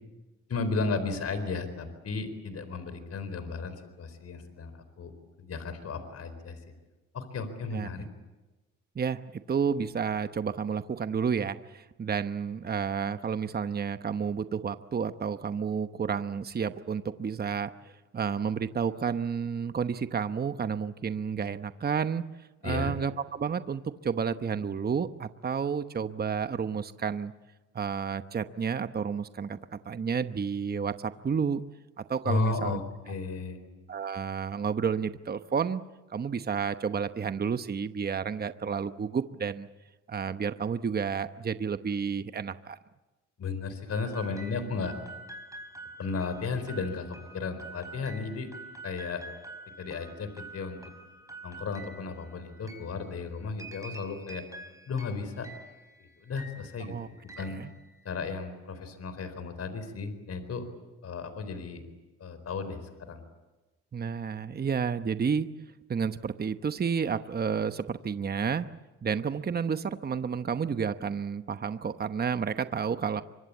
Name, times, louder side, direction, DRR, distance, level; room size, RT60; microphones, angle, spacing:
voice 1, 0.5-4.7 5.0-5.1 5.4-6.6 7.1-8.1 22.6-22.9 32.2-33.6 43.4-44.9 46.0-48.5 48.8-49.2 49.8-50.8 51.4-54.4 54.9-55.5 56.0-57.6 58.0-60.6 61.0-61.8 62.2-63.2, left 4 dB, 55° left, 11 dB, 4.3 m, -34 dB
voice 2, 7.7-8.1 8.9-22.2 22.6-27.3 27.7-31.6 32.0-32.8 33.9-35.8 36.1-39.7 40.1-42.8 56.9-57.1 57.4-57.7 63.9-65.5 65.9-68.7 69.0-73.2, right 6 dB, 30° right, 11 dB, 1.0 m, -31 dB
sound 1, 43.9-58.4, right 2 dB, 10° right, 4.5 m, -47 dB
25.5 x 23.5 x 8.5 m, 1.1 s
cardioid pair, 90°, 30 cm